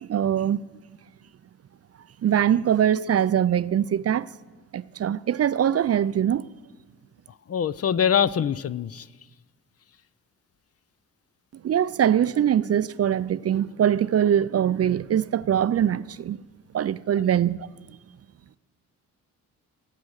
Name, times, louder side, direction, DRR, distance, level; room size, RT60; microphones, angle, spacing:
voice 1, 0.0-0.6 2.2-4.3 4.7-6.5 11.6-16.4 16.7-17.7, right 9 dB, 45° right, 0.4 m, -22 dB
voice 2, 7.5-9.1, left 8 dB, 45° left, 0.5 m, -23 dB
18.5 x 8.4 x 6.4 m
cardioid pair, 75°, 35 cm